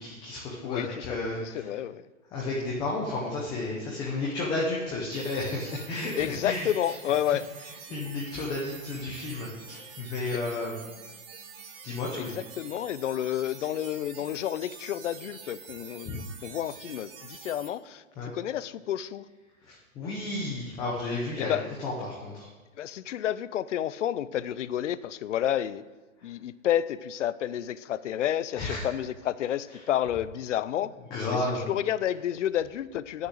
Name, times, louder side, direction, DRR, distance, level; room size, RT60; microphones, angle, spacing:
voice 1, 0.0-1.7 2.3-6.7 7.9-10.7 11.8-12.3 16.1-16.2 18.2-18.3 19.6-22.5 28.6-28.8 31.1-31.6, left 2 dB, 10° left, -3 dB, 0.7 m, -32 dB
voice 2, 0.6-1.1 1.4-2.0 6.2-7.5 10.3-10.4 12.1-19.3 21.4-21.7 22.8-25.8 26.2-30.9 31.3-33.3, left 11 dB, 60° left, 16 dB, 0.6 m, -30 dB
sound 1, 5.1-17.7, right 6 dB, 45° right, 1.9 m, -46 dB
8.6 x 6.7 x 7.7 m, 1.2 s
hypercardioid pair, 160°, 41 cm